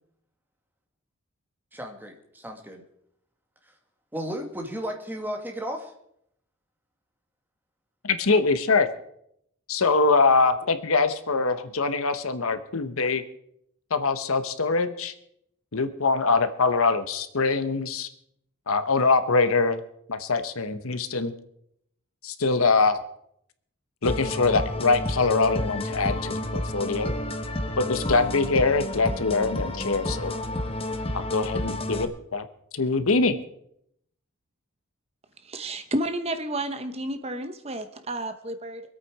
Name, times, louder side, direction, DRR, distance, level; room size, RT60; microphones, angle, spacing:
voice 1, 1.7-2.8 3.6-3.7 4.1-5.9, equal, 10° right, 2 dB, 1.8 m, -34 dB
voice 2, 8.0-8.9 9.7-13.2 13.9-15.1 15.7-18.1 18.7-19.8 20.1-21.3 22.2-23.0 24.0-27.1 27.8-30.3 31.1-32.4 32.7-33.4, left 4 dB, 80° left, 10 dB, 1.1 m, -23 dB
sound 1, 24.1-32.1, left 1 dB, 25° left, 1.0 m, -30 dB
voice 3, 35.4-38.8, right 1 dB, 30° right, 9 dB, 0.8 m, -31 dB
23.5 x 8.6 x 4.8 m, 0.73 s
head